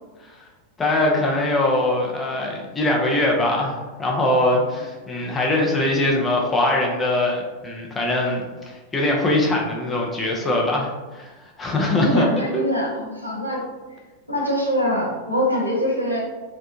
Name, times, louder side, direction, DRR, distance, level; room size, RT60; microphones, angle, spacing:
voice 1, 0.8-12.3 12.5-12.6, left 1 dB, 15° left, -1 dB, 0.4 m, -22 dB
voice 2, 12.0-13.6 14.3-16.2, equal, 85° left, -3 dB, 0.5 m, -23 dB
2.6 x 2.1 x 2.5 m, 1.2 s
figure-of-eight pair, 90°, 0 cm